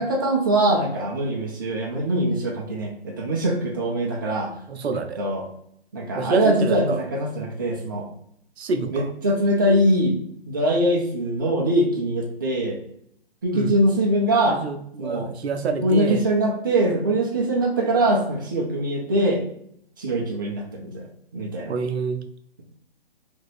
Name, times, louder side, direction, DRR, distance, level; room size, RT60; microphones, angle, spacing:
voice 1, 0.0-4.5 4.9-5.5 5.9-8.1 8.9-12.8 13.4-14.6 15.0-15.3 15.8-19.4 20.0-21.1 21.3-21.8, right 1 dB, 20° right, -2 dB, 0.4 m, -22 dB
voice 2, 4.7-5.2 6.1-7.0 8.6-9.1 13.5-13.7 14.4-16.2 21.7-22.2, right 4 dB, 80° right, 8 dB, 0.5 m, -27 dB
2.9 x 2.5 x 3.1 m, 0.69 s
hypercardioid pair, 150°, 32 cm